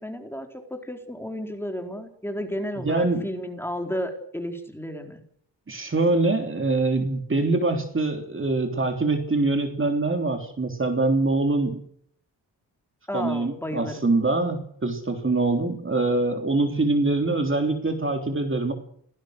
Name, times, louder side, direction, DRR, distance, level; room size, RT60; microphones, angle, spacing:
voice 1, 0.0-5.2 13.1-14.0, equal, 5° left, 4 dB, 4.1 m, -32 dB
voice 2, 2.8-3.3 5.7-11.8 13.1-18.7, right 2 dB, 30° right, 5 dB, 3.5 m, -24 dB
28.0 x 18.5 x 6.6 m, 0.64 s
wide cardioid pair, 115°, 42 cm